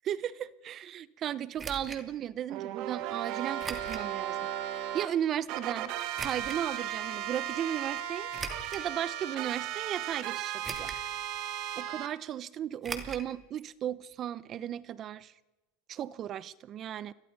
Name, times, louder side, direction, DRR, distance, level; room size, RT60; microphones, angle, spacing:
voice 1, 0.0-4.4 4.9-5.9 6.2-8.3 8.7-10.9 11.8-15.3 15.9-17.1, right 10 dB, 35° right, 0.8 m, -35 dB
sound 1, 1.6-2.0 3.6-4.1 4.6-4.7 6.1-6.6 8.3-8.9 9.5-9.6 10.6-11.1 11.4-11.5 12.8-13.3 13.6-13.7 13.9-14.0, right 4 dB, 20° right, 2.7 m, -40 dB
sound 2, 2.5-5.1 5.5-12.1, right 11 dB, 55° right, 1.9 m, -36 dB
29.0 x 22.0 x 5.4 m
supercardioid pair, 120°, 0 cm